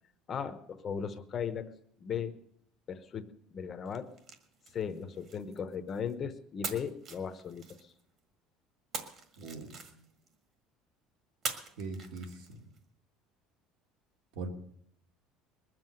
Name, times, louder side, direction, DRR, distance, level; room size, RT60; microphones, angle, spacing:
voice 1, 0.3-1.7 2.0-2.3 2.9-4.1 4.7-7.6, left 7 dB, 25° left, 10 dB, 0.8 m, -37 dB
sound 1, 3.9-6.1 6.6-8.2 8.9-10.3 11.4-12.8, right 5 dB, 35° right, 1.6 m, -43 dB
voice 2, 9.4-10.0 11.8-12.7 14.3-14.5, right 4 dB, 80° right, 4 dB, 2.4 m, -41 dB
20.5 x 7.6 x 7.8 m, 0.69 s
cardioid pair, 175°, 0 cm